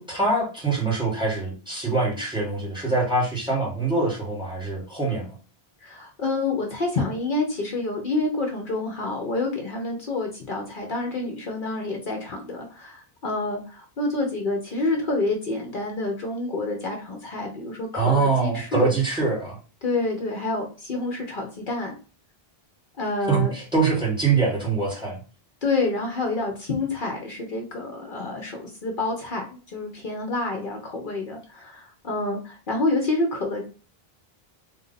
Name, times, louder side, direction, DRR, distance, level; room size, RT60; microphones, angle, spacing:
voice 1, 0.0-5.3 17.9-19.6 23.3-25.2, right 3 dB, 5° right, -4 dB, 1.7 m, -24 dB
voice 2, 5.8-19.0 19.8-21.9 23.0-23.5 25.6-33.7, left 2 dB, 55° left, 2 dB, 0.9 m, -28 dB
3.7 x 2.7 x 3.9 m, 0.35 s
omnidirectional pair, 1.0 m